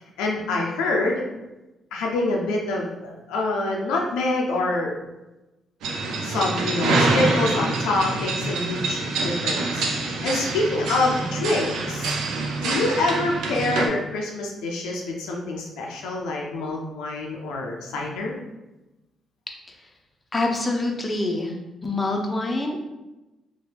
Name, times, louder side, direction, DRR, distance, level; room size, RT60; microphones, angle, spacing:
voice 1, 0.2-1.2 1.9-5.0 6.2-12.2 12.6-18.3, left 2 dB, 85° left, -1 dB, 0.4 m, -26 dB
sound 1, 5.8-13.9, right 3 dB, 80° right, 0.4 m, -26 dB
voice 2, 20.3-21.5 21.8-22.8, left 2 dB, 25° left, 2 dB, 0.6 m, -25 dB
2.8 x 2.2 x 3.3 m, 1.0 s
supercardioid pair, 55°, 0 cm